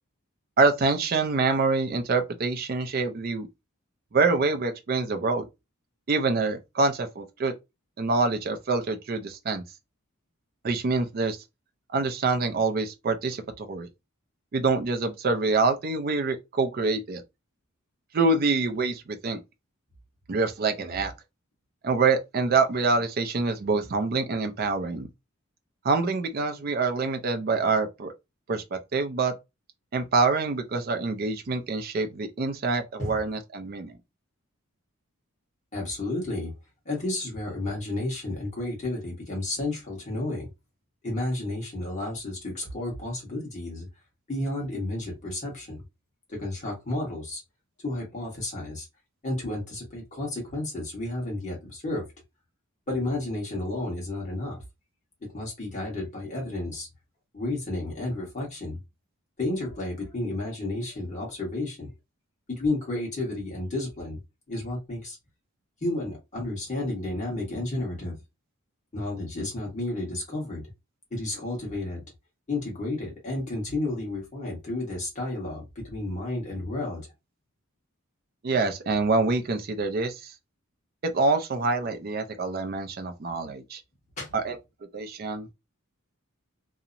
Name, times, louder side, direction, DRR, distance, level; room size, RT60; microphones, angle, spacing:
voice 1, 0.6-3.5 4.1-5.5 6.1-7.5 8.0-9.6 10.6-11.4 11.9-13.9 14.5-17.2 18.1-19.4 20.3-21.1 21.8-25.1 25.8-28.1 28.5-29.3 29.9-33.9 78.4-80.3 81.0-83.8 84.3-84.6 84.9-85.5, right 3 dB, 45° right, 0.4 m, -26 dB
voice 2, 35.7-36.5 36.8-40.5 41.0-43.9 44.3-45.8 46.3-47.4 47.8-48.8 49.2-52.0 52.9-54.6 55.3-56.9 57.3-58.8 59.4-61.9 62.5-64.2 64.5-65.2 65.8-68.2 68.9-70.6 71.1-72.0 72.5-77.1 84.2-84.3, left 2 dB, 35° left, 1.2 m, -32 dB
2.8 x 2.0 x 2.5 m
head